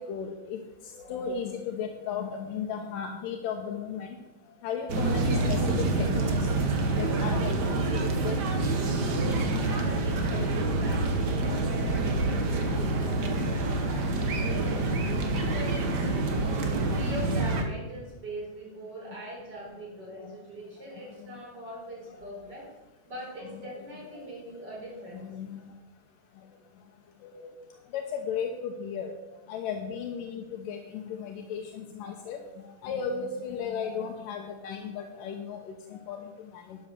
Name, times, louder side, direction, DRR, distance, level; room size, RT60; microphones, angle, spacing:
voice 1, 0.1-0.6 0.8-4.2 4.6-6.5 7.0-8.0 8.2-8.4 11.3-11.7 12.0-12.2 12.7-12.8 20.2-20.4 22.5-22.6 23.5-23.6 24.1-24.3 24.9-25.6 27.2-27.5 27.9-29.1 29.5-32.4 32.8-36.8, left 6 dB, 80° left, 3 dB, 2.6 m, -35 dB
sound 1, 4.9-17.6, right 2 dB, 60° right, 1.0 m, -27 dB
voice 2, 9.6-14.9 15.3-22.7 23.1-25.2, equal, 30° right, -3 dB, 4.6 m, -42 dB
12.0 x 8.0 x 6.8 m, 1.1 s
omnidirectional pair, 3.9 m